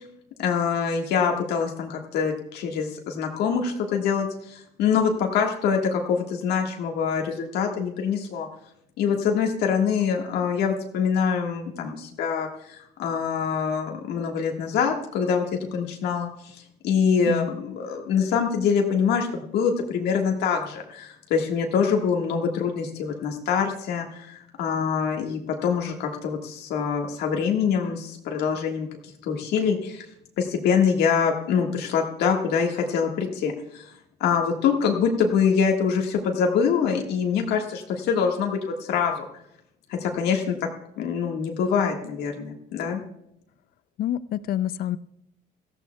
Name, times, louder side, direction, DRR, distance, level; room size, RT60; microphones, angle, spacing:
voice 1, 0.4-8.5 9.0-15.4 15.7-16.3 16.8-28.9 29.2-30.0 30.4-33.9 34.2-39.3 39.9-40.6 41.0-43.0, left 6 dB, 80° left, 2 dB, 1.6 m, -24 dB
voice 2, 44.0-45.0, left 11 dB, 60° left, 16 dB, 0.5 m, -27 dB
18.0 x 14.5 x 2.3 m, 0.78 s
cardioid pair, 110°, 17 cm